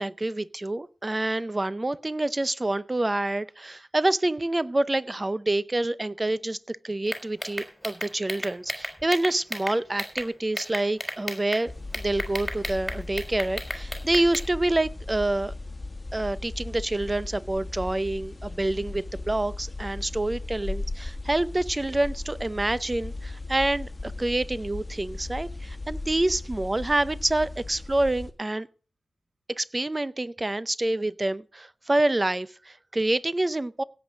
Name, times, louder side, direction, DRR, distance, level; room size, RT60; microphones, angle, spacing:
voice 1, 0.0-15.5 16.1-28.7 29.6-33.8, right 2 dB, 20° right, 0.6 m, -27 dB
sound 1, 7.1-10.3 10.6-11.6 11.9-14.5, equal, ahead, 4.0 m, -33 dB
sound 2, 11.7-28.3, left 2 dB, 20° left, 1.7 m, -37 dB
17.0 x 8.0 x 5.0 m
wide cardioid pair, 135°, 0 cm